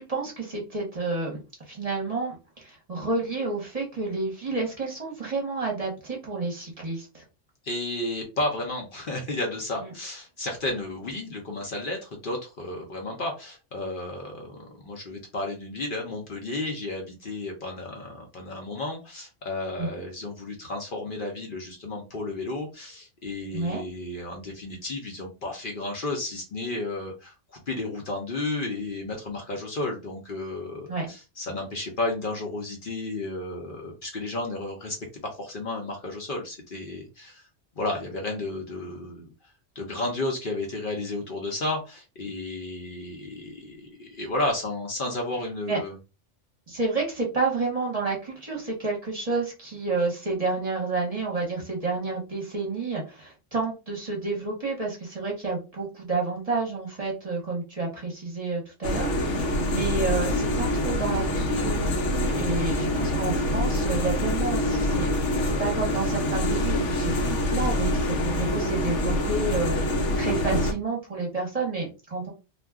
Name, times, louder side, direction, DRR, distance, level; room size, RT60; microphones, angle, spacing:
voice 1, 0.0-7.2 9.8-9.9 19.8-19.9 23.5-23.8 30.9-31.1 45.7-45.8 46.7-72.3, right 3 dB, 35° right, -1 dB, 0.9 m, -30 dB
voice 2, 7.6-35.0 35.3-37.5 37.8-39.3 39.8-46.0, left 2 dB, 50° left, 1 dB, 0.8 m, -32 dB
sound 1, 58.8-70.7, left 1 dB, 80° left, 1.0 m, -25 dB
2.4 x 2.2 x 3.4 m, 0.29 s
omnidirectional pair, 1.2 m